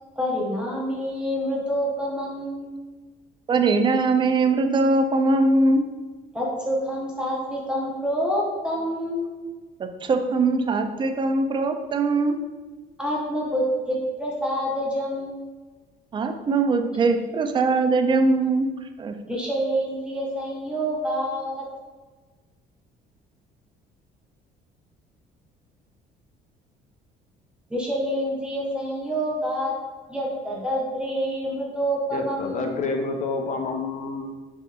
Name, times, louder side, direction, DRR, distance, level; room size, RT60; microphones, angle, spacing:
voice 1, 0.2-2.8 6.3-9.3 13.0-15.4 19.3-21.6 27.7-29.7 30.1-32.7, equal, 5° right, -5 dB, 0.8 m, -27 dB
voice 2, 3.5-5.8 9.8-12.4 16.1-19.2, right 3 dB, 30° right, 6 dB, 0.3 m, -21 dB
voice 3, 32.1-34.3, left 3 dB, 45° left, 4 dB, 0.5 m, -28 dB
4.5 x 2.8 x 2.4 m, 1.4 s
cardioid pair, 110°, 17 cm